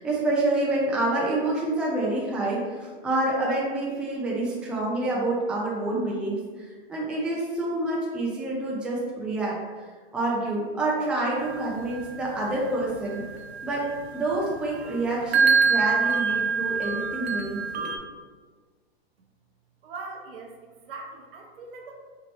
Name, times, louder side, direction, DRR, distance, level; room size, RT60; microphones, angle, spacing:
voice 1, 0.0-9.9 10.1-13.2 13.6-13.9 14.1-17.9, right 2 dB, 5° right, -4 dB, 0.4 m, -27 dB
sound 1, 11.4-18.0, right 5 dB, 85° right, 0.6 m, -26 dB
voice 2, 19.8-20.6 20.9-22.0, right 3 dB, 65° right, 1 dB, 0.9 m, -40 dB
3.1 x 3.0 x 4.0 m, 1.5 s
hypercardioid pair, 120°, 31 cm